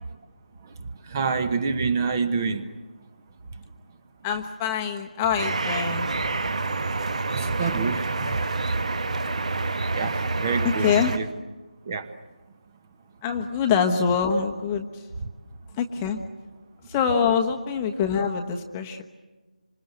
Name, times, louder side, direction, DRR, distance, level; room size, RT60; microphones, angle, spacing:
voice 1, 0.6-2.7 7.3-8.5 9.9-11.3 11.8-12.1 15.2-15.3, right 5 dB, 25° right, 10 dB, 1.2 m, -28 dB
voice 2, 4.2-6.3 10.6-11.1 13.2-15.0 15.8-16.2 16.9-19.0, left 7 dB, 15° left, 4 dB, 1.1 m, -25 dB
sound 1, 5.4-11.2, right 3 dB, 55° right, 1.4 m, -27 dB
26.5 x 26.0 x 8.0 m, 1.2 s
figure-of-eight pair, 165°, 4 cm